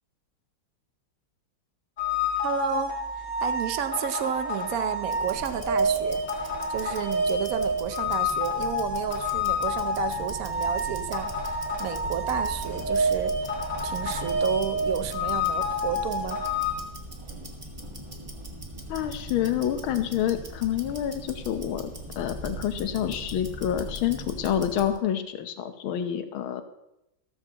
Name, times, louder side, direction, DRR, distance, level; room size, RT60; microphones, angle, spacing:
sound 1, 2.0-16.7, left 1 dB, 30° left, 2.7 m, -28 dB
voice 1, 2.4-3.0 3.4-13.5 13.8-16.4, right 9 dB, 65° right, 10 dB, 0.8 m, -32 dB
Tick-tock, 5.0-25.0, equal, 15° right, 1.4 m, -40 dB
voice 2, 18.9-21.9 22.2-26.6, left 10 dB, 80° left, 9 dB, 1.7 m, -28 dB
14.5 x 13.5 x 2.9 m, 0.88 s
omnidirectional pair, 2.3 m